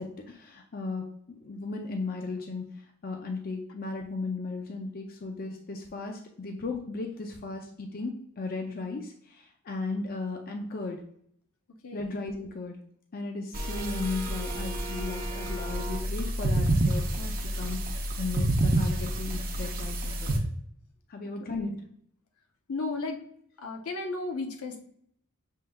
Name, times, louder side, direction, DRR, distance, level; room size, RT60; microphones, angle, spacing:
voice 1, 0.0-2.7 3.0-11.0 11.9-12.8 13.1-17.8 18.2-20.4 21.1-21.7, left 3 dB, 40° left, 3 dB, 0.5 m, -36 dB
voice 2, 11.8-12.1 21.4-21.8 22.7-23.2 23.6-24.8, left 3 dB, 70° left, 3 dB, 0.7 m, -34 dB
sound 1, 13.5-20.4, right 1 dB, 40° right, 0.6 m, -29 dB
6.4 x 3.7 x 2.3 m, 0.67 s
head